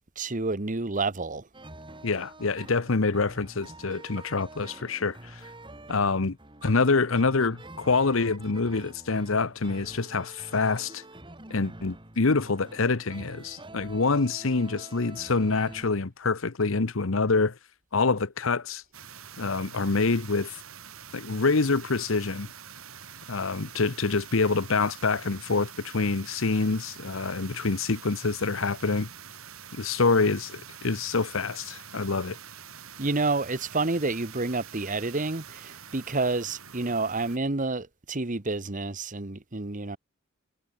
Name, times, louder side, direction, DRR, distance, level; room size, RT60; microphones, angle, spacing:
voice 1, 0.2-1.4 33.0-40.0, right 3 dB, 40° right, 1.3 m, -29 dB
sound 1, 1.5-15.9, right 2 dB, 25° right, 6.4 m, -47 dB
voice 2, 2.0-5.4 5.9-6.4 6.6-11.0 11.5-17.6 17.9-18.8 19.4-20.6 21.1-22.5 23.3-29.1 29.8-32.4, left 4 dB, 65° left, 1.0 m, -26 dB
sound 2, 18.9-37.4, right 8 dB, 85° right, 5.0 m, -46 dB
head